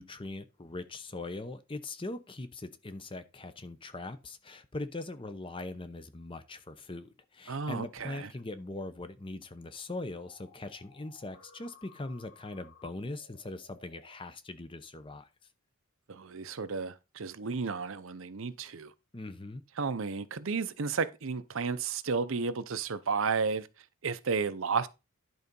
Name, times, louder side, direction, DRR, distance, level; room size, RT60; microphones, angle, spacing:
voice 1, 0.0-15.3 19.1-19.6, left 2 dB, 25° left, 0.7 m, -41 dB
voice 2, 7.5-8.3 16.1-18.9 19.8-23.7 24.0-24.9, right 5 dB, 60° right, 0.7 m, -32 dB
sound 1, 10.2-14.1, left 4 dB, 50° left, 2.9 m, -58 dB
11.0 x 3.9 x 5.3 m
head